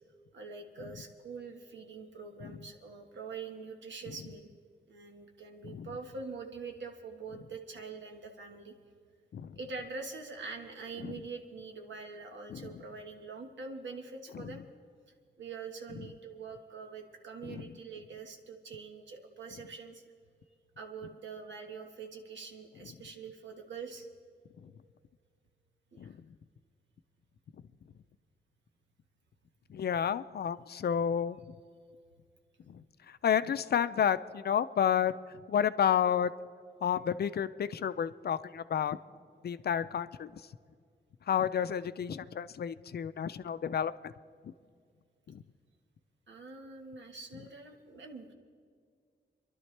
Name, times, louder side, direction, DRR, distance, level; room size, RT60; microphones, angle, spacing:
voice 1, 0.3-4.5 4.9-8.7 9.6-14.6 15.4-20.0 20.4-24.1 25.9-26.1 46.3-48.3, right 4 dB, 90° right, 3 dB, 1.5 m, -44 dB
voice 2, 29.7-31.4 32.7-35.1 35.5-36.3 36.8-39.0 39.4-40.3 41.3-44.1 44.4-44.5 45.3-45.4, left 8 dB, 60° left, 13 dB, 0.4 m, -31 dB
27.0 x 11.5 x 3.3 m, 2.1 s
wide cardioid pair, 160°, 18 cm